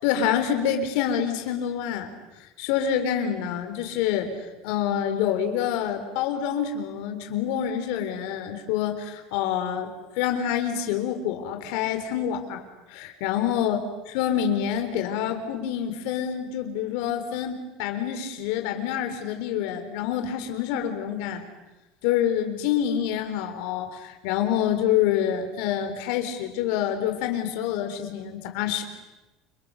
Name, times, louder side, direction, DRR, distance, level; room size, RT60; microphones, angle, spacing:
voice 1, 0.0-2.1 2.4-9.9 10.2-12.6 12.9-13.8 14.1-21.4 22.0-28.8, left 9 dB, 65° left, 6 dB, 4.0 m, -27 dB
29.0 x 27.0 x 6.6 m, 1.1 s
cardioid pair, 180°, 0 cm